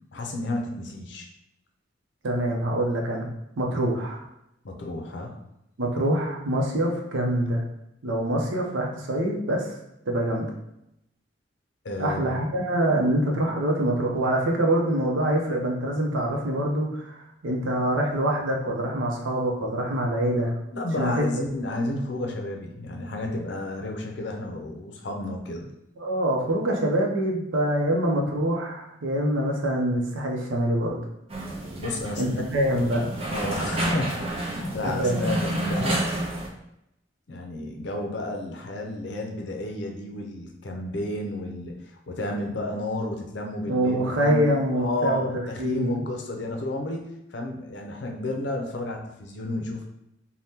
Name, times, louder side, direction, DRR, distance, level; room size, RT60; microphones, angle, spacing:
voice 1, 0.1-1.3 4.6-5.4 11.8-12.4 20.7-25.7 31.8-33.0 33.3-36.2 37.3-44.5 44.7-47.1 47.3-49.9, left 2 dB, 65° left, 2 dB, 0.5 m, -32 dB
voice 2, 2.2-3.3 3.6-4.2 5.8-7.6 8.0-9.7 10.1-10.5 12.0-17.2 17.4-20.5 21.0-21.3 26.0-31.0 32.2-33.1 35.0-35.2 43.7-46.1, right 1 dB, 85° right, 0 dB, 0.6 m, -25 dB
sound 1, 31.3-36.5, right 1 dB, 30° right, 0.5 m, -30 dB
2.8 x 2.1 x 3.5 m, 0.84 s
head